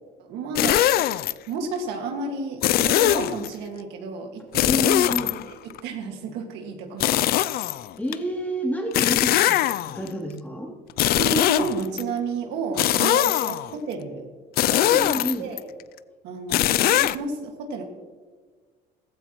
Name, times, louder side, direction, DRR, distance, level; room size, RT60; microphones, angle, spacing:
voice 1, 0.2-1.1 1.5-4.9 5.5-5.6 5.8-7.5 11.1-14.3 14.6-15.0 15.4-15.7 16.2-17.8, right 3 dB, 90° right, 3 dB, 1.9 m, -32 dB
sound 1, 0.6-1.3 2.6-3.5 4.5-5.8 7.0-8.2 8.9-10.1 10.9-12.0 12.8-13.7 14.6-15.6 16.5-17.2, left 13 dB, 65° left, 0.4 m, -21 dB
voice 2, 4.6-5.4 8.0-9.6 9.9-10.7 14.8-15.5, equal, 10° left, -3 dB, 3.1 m, -29 dB
15.5 x 14.5 x 3.1 m, 1.5 s
cardioid pair, 110°, 17 cm